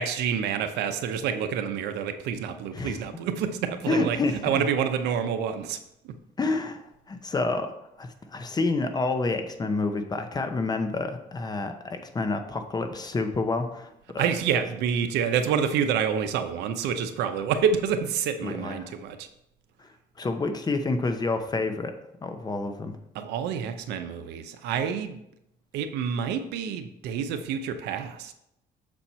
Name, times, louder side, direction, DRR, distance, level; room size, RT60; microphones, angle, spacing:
voice 1, 0.0-4.2 4.4-5.8 14.2-19.3 23.1-25.2 25.7-28.3, right 7 dB, 85° right, 8 dB, 0.7 m, -28 dB
voice 2, 3.9-4.7 6.4-7.7 8.0-14.2 18.4-18.9 20.2-21.9 22.2-22.9, left 3 dB, 25° left, 7 dB, 0.7 m, -28 dB
7.0 x 4.4 x 4.3 m, 0.82 s
cardioid pair, 110°, 17 cm